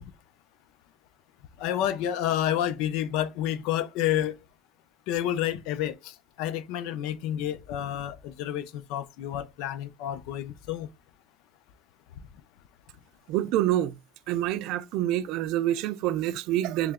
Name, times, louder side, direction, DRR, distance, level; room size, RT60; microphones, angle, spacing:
voice 1, 1.6-4.4 5.1-10.9, left 11 dB, 85° left, 0.4 m, -29 dB
voice 2, 13.3-14.0 14.3-16.9, right 13 dB, 75° right, 0.3 m, -27 dB
3.2 x 2.8 x 3.5 m
cardioid pair, 130°, 0 cm